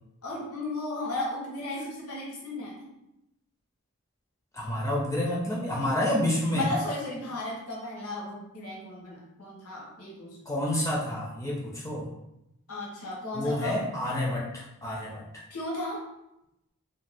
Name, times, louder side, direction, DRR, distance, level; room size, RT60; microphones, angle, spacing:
voice 1, 0.2-2.8 6.5-10.4 12.7-13.8 15.5-16.0, left 2 dB, 75° left, -3 dB, 0.9 m, -35 dB
voice 2, 4.5-6.7 10.5-12.1 13.3-15.4, left 1 dB, 15° left, -4 dB, 0.4 m, -29 dB
2.6 x 2.2 x 3.3 m, 0.86 s
head